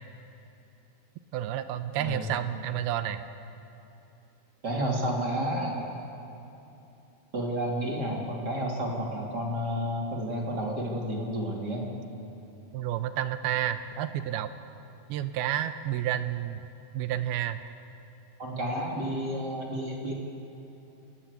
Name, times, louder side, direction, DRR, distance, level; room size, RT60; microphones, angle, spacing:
voice 1, 1.3-3.2 12.7-14.5 15.1-16.6 16.9-17.6, right 11 dB, 80° right, 11 dB, 2.5 m, -30 dB
voice 2, 2.0-2.3 4.6-5.9 7.3-11.9 18.4-20.1, equal, 30° right, -1 dB, 2.6 m, -31 dB
28.5 x 13.5 x 8.2 m, 2.8 s
omnidirectional pair, 4.6 m